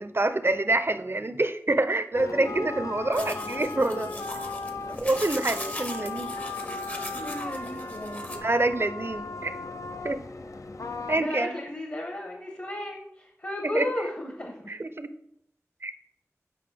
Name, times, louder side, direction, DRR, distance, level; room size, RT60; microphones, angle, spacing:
voice 1, 0.0-4.1 5.0-6.3 7.2-7.3 8.3-9.6 10.0-10.2 11.1-11.6 13.7-13.9 14.7-15.1 15.8-15.9, right 2 dB, 45° right, 10 dB, 0.5 m, -26 dB
sound 1, 2.1-11.2, left 3 dB, 75° left, 0.4 m, -36 dB
sound 2, 3.1-8.4, left 1 dB, 30° left, 0.7 m, -39 dB
voice 2, 7.1-8.3 11.1-14.7, left 1 dB, 45° left, 0 dB, 1.1 m, -35 dB
7.7 x 5.0 x 3.4 m, 0.74 s
wide cardioid pair, 50°, 6 cm